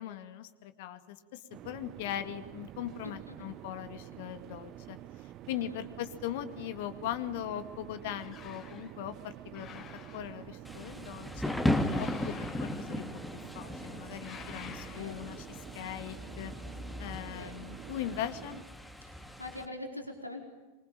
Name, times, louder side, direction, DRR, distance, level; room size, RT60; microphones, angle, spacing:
voice 1, 0.0-5.0 5.5-9.9 10.1-11.6 12.0-13.1 13.5-16.5 17.0-18.6, left 11 dB, 50° left, 11 dB, 2.1 m, -40 dB
sound 1, 1.5-18.6, right 13 dB, 35° right, 0.9 m, -48 dB
voice 2, 3.0-3.5 5.5-5.8 14.9-15.2 17.3-17.5 19.0-19.1 19.4-20.4, left 1 dB, 85° left, 3 dB, 4.5 m, -43 dB
sound 2, 8.0-8.9 9.5-10.6 11.7-13.3 14.1-15.4, left 7 dB, 30° left, 3.7 m, -50 dB
Thunder / Rain, 10.6-19.7, left 1 dB, 5° left, 2.4 m, -36 dB
25.5 x 25.0 x 9.0 m, 1.2 s
figure-of-eight pair, 90°, 0 cm